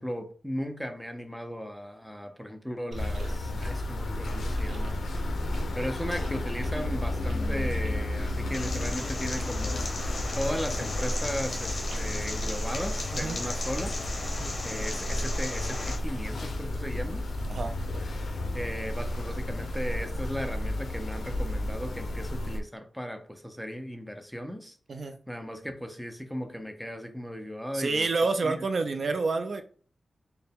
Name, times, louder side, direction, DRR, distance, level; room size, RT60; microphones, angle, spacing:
voice 1, 0.0-5.0 5.7-9.9 10.3-13.9 14.6-17.2 18.5-24.8 25.3-28.1 28.4-28.6, equal, ahead, 6 dB, 0.5 m, -36 dB
sound 1, 2.9-18.1, right 1 dB, 90° right, 0.8 m, -44 dB
sound 2, 3.0-22.6, left 1 dB, 70° left, 0.5 m, -32 dB
sound 3, 8.5-16.0, left 2 dB, 55° left, 0.9 m, -36 dB
voice 2, 13.1-13.4 14.4-14.5 17.5-17.7 24.9-25.2 27.7-29.6, right 3 dB, 55° right, 7 dB, 0.4 m, -28 dB
4.3 x 2.1 x 3.5 m, 0.42 s
wide cardioid pair, 130°, 0 cm